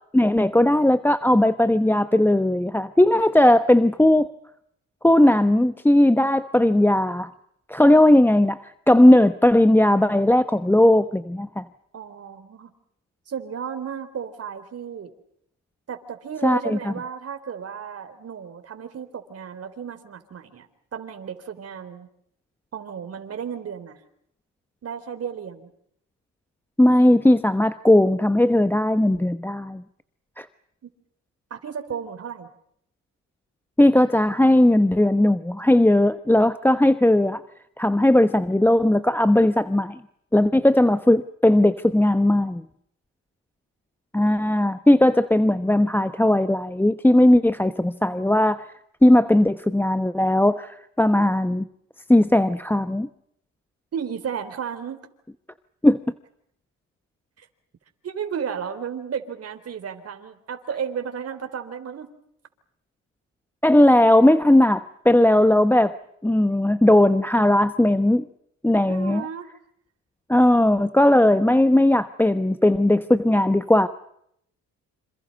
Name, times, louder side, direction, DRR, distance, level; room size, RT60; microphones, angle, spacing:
voice 1, 0.1-4.3 5.0-7.3 7.7-11.6 16.4-16.9 26.8-29.8 30.4-30.5 33.8-37.4 37.8-40.0 40.3-42.6 44.1-48.6 49.0-51.6 52.1-53.1 55.8-56.0 63.6-66.0 66.2-68.3 68.6-69.3 70.3-73.9, left 1 dB, 5° left, 12 dB, 1.0 m, -18 dB
voice 2, 11.9-12.7 13.3-15.1 15.9-20.7 20.9-22.1 22.7-24.0 24.8-25.7 30.8-30.9 31.5-32.5 53.9-55.0 57.4-57.5 58.0-62.1 68.9-69.5, right 7 dB, 55° right, 7 dB, 3.8 m, -33 dB
27.5 x 27.5 x 5.4 m, 0.73 s
cardioid pair, 90°, 30 cm